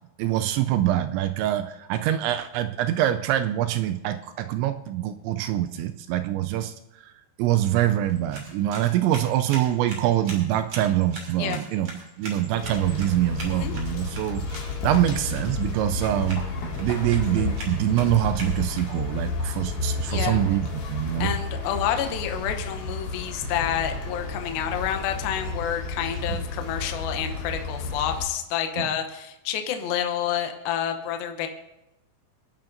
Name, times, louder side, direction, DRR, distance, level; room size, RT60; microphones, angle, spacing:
voice 1, 0.2-6.7 7.0-7.1 7.4-11.9 12.2-16.5 16.8-21.3 26.3-26.4 28.8-28.9, right 12 dB, 85° right, 9 dB, 2.7 m, -25 dB
sound 1, 8.0-19.2, right 2 dB, 35° right, 3.7 m, -43 dB
sound 2, 12.6-28.3, left 3 dB, 55° left, 3.3 m, -31 dB
voice 2, 20.1-20.4 21.2-31.5, left 9 dB, 80° left, 6 dB, 2.1 m, -29 dB
26.0 x 11.5 x 2.6 m, 0.94 s
omnidirectional pair, 5.6 m